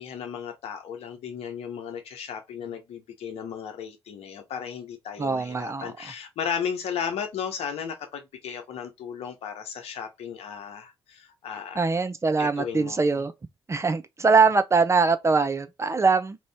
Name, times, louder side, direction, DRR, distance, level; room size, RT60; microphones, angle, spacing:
voice 1, 0.0-11.9 12.4-13.3, left 7 dB, 60° left, 0.9 m, -35 dB
voice 2, 5.2-5.9 11.8-13.3 13.7-16.4, right 4 dB, 25° right, 0.5 m, -22 dB
2.9 x 2.6 x 3.5 m
hypercardioid pair, 45°, 12 cm